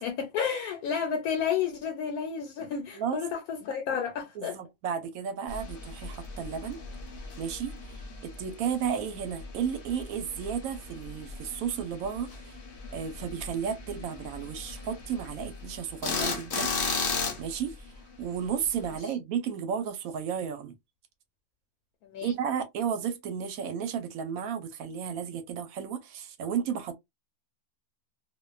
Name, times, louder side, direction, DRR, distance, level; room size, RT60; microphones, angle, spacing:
voice 1, 0.0-4.6 19.0-19.1 22.0-22.3, left 7 dB, 80° left, 1.1 m, -31 dB
voice 2, 4.4-6.8 7.4-7.7 8.2-12.6 12.9-16.7 17.4-17.8 18.2-20.7 22.2-27.0, right 7 dB, 75° right, 1.0 m, -33 dB
sound 1, 5.5-18.9, left 4 dB, 50° left, 0.7 m, -37 dB
2.5 x 2.2 x 2.3 m
omnidirectional pair, 1.6 m